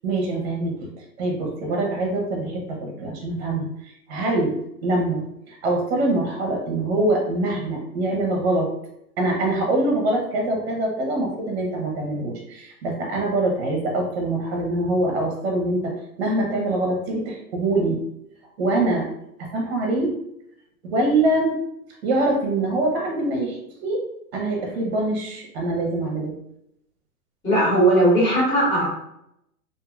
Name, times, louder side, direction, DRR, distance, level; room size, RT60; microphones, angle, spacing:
voice 1, 0.0-0.8 1.2-3.7 4.1-8.7 9.2-15.9 16.2-18.0 18.6-19.1 19.5-20.1 20.8-21.6 22.0-24.0 24.3-26.3, right 2 dB, 40° right, 0 dB, 0.8 m, -24 dB
voice 2, 27.4-28.9, right 1 dB, 5° left, -10 dB, 1.0 m, -18 dB
2.7 x 2.7 x 2.4 m, 0.78 s
hypercardioid pair, 150°, 47 cm